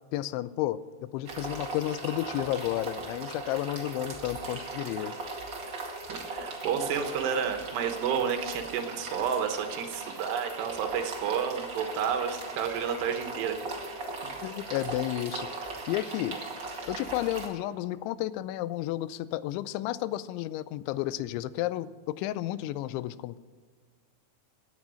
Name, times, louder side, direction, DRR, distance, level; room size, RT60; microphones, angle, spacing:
voice 1, 0.1-5.1 14.4-15.5 15.9-16.4 16.9-23.4, left 14 dB, 85° left, 16 dB, 2.9 m, -32 dB
sound 1, 1.2-17.5, right 3 dB, 45° right, 1.6 m, -38 dB
voice 2, 6.1-13.6, right 7 dB, 70° right, 5 dB, 3.1 m, -30 dB
17.0 x 9.8 x 6.3 m, 1.5 s
omnidirectional pair, 5.2 m